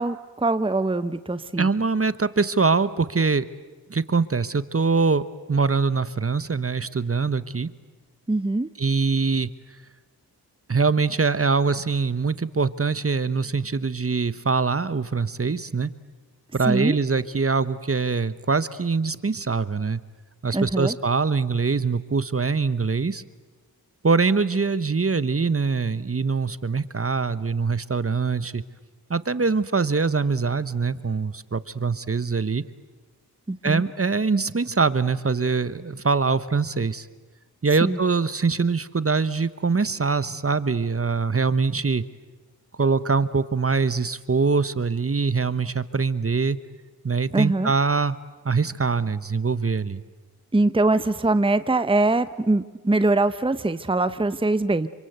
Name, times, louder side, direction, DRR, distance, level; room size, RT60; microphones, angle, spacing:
voice 1, 0.0-1.7 8.3-8.7 16.6-17.0 20.5-21.0 33.5-33.8 37.8-38.0 47.3-47.7 50.5-54.9, right 2 dB, 15° right, 13 dB, 0.9 m, -22 dB
voice 2, 1.6-3.4 3.9-5.2 5.5-7.7 8.8-9.5 10.7-15.9 16.5-20.0 20.4-23.2 24.0-28.6 29.1-32.6 33.6-37.1 37.6-42.0 42.7-46.6 47.0-48.2 48.4-50.0, right 4 dB, 35° right, 15 dB, 1.1 m, -23 dB
27.0 x 25.5 x 8.1 m, 1.3 s
cardioid pair, 45°, 39 cm